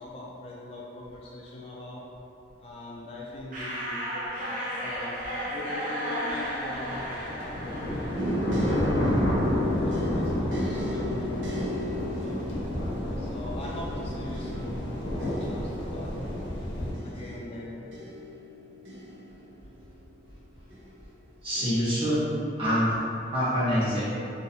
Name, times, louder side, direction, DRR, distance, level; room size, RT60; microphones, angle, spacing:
voice 1, 0.0-2.0 2.6-4.0 4.8-5.2 5.5-7.9 8.2-8.5 9.6-11.3 11.5-12.6 13.2-16.1 16.7-17.9, left 2 dB, 30° left, -5 dB, 0.3 m, -42 dB
sound 1, 3.5-9.0, equal, 50° right, 0.6 m, -34 dB
sound 2, 6.6-16.9, left 1 dB, 85° left, 0.7 m, -30 dB
sound 3, 8.1-20.0 20.7-21.2 21.5-21.8, left 1 dB, 85° right, 0.7 m, -35 dB
voice 2, 21.4-22.3 22.6-22.9 23.3-24.0, equal, 30° right, -12 dB, 1.2 m, -25 dB
3.0 x 2.6 x 2.6 m, 2.7 s
head